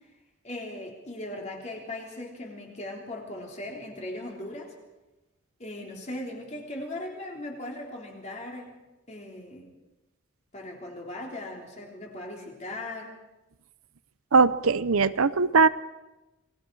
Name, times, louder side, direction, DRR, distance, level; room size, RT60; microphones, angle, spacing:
voice 1, 0.4-4.7 5.6-8.8 9.1-9.7 10.5-13.1, left 1 dB, 35° left, -1 dB, 3.7 m, -38 dB
voice 2, 14.3-15.7, right 4 dB, 90° right, 15 dB, 0.7 m, -20 dB
28.5 x 19.5 x 4.8 m, 1.0 s
head